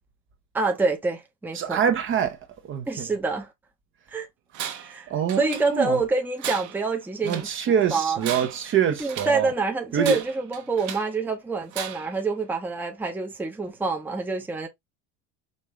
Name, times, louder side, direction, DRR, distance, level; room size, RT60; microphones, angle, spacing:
voice 1, 0.5-1.8 2.9-3.5 4.1-4.3 4.7-5.1 5.4-7.5 7.9-8.2 9.0-14.7, right 3 dB, 5° right, 0.8 m, -26 dB
voice 2, 1.5-2.4 2.6-3.1 5.1-6.0 7.2-9.5 9.9-10.2, right 8 dB, 35° right, 0.9 m, -25 dB
Tools, 4.5-5.0 5.3-6.0 6.4-7.6 8.1-9.5 10.0-11.2 11.7-12.2, right 9 dB, 50° right, 1.2 m, -36 dB
5.4 x 3.0 x 3.2 m
cardioid pair, 150°, 37 cm